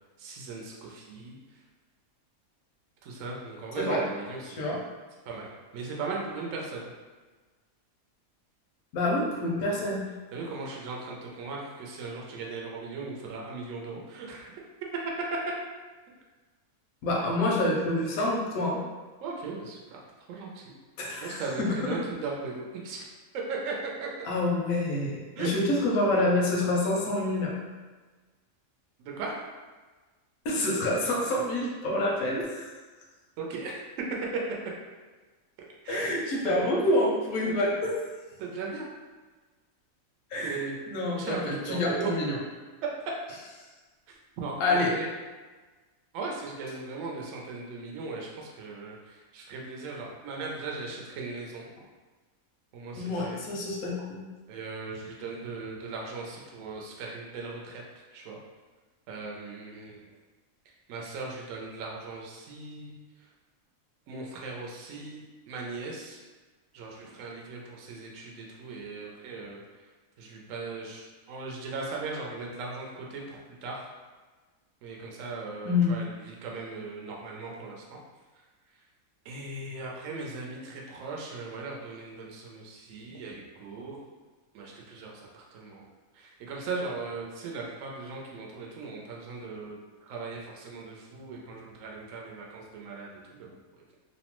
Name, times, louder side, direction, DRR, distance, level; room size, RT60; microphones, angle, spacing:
voice 1, 0.2-1.4 3.0-4.8 5.3-6.9 10.3-14.5 15.3-15.4 19.2-20.0 20.3-20.7 21.2-23.1 23.3-24.3 25.4-25.5 25.9-26.3 29.0-29.4 33.4-33.8 35.8-36.1 36.4-36.7 38.4-38.9 40.4-40.7 41.2-42.1 42.8-42.9 44.4-45.1 46.1-51.7 52.7-53.4 54.5-57.8 58.1-58.4 59.1-60.1 60.9-62.9 64.1-66.2 66.7-69.6 70.2-73.9 74.8-78.0 79.2-84.0 84.5-85.8 86.1-94.0, right 3 dB, 70° right, -2 dB, 0.9 m, -38 dB
voice 2, 8.9-10.0 17.0-18.8 21.0-21.8 24.2-27.5 30.4-32.7 35.9-37.9 40.3-42.4 44.6-44.9 52.9-54.2 75.6-75.9, left 2 dB, 85° left, -2 dB, 1.1 m, -27 dB
2.8 x 2.1 x 2.9 m, 1.3 s
omnidirectional pair, 1.5 m